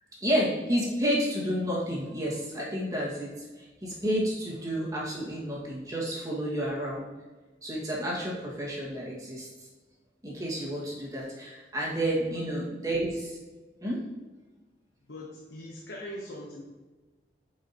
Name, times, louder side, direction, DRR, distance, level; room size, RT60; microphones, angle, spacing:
voice 1, 0.2-7.1 7.6-9.5 10.2-13.4 13.8-14.0, equal, 20° right, -5 dB, 1.8 m, -30 dB
voice 2, 15.1-16.6, left 1 dB, 85° left, -2 dB, 0.9 m, -41 dB
9.0 x 5.0 x 2.9 m, 1.3 s
head